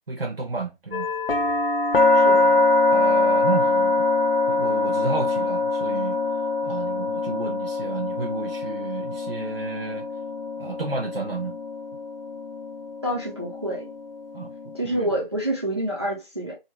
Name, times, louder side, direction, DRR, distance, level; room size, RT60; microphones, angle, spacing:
voice 1, 0.1-1.1 2.9-4.0 4.5-6.2 6.6-10.1 10.6-11.6 14.3-15.1, right 4 dB, 75° right, 1.0 m, -31 dB
sound 1, 0.9-14.8, left 2 dB, 70° left, 0.6 m, -24 dB
voice 2, 2.1-2.7 13.0-13.9 14.7-16.5, right 1 dB, 30° right, 0.6 m, -28 dB
2.8 x 2.8 x 2.9 m
figure-of-eight pair, 170°, 29 cm